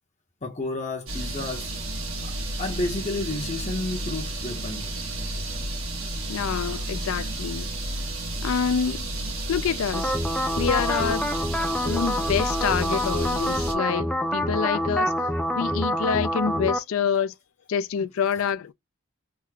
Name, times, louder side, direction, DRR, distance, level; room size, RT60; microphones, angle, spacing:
voice 1, 0.4-1.7 2.2-2.3 2.6-4.9, left 2 dB, 35° left, 0.7 m, -31 dB
sound 1, 1.1-13.7, right 1 dB, 90° right, 1.3 m, -32 dB
voice 2, 6.3-7.7 8.4-9.1 9.5-10.1 10.6-11.3 11.8-15.1 15.5-17.3 17.7-18.7, left 7 dB, 80° left, 0.4 m, -27 dB
sound 2, 9.9-16.8, equal, 5° left, 0.3 m, -26 dB
3.5 x 2.1 x 3.1 m
head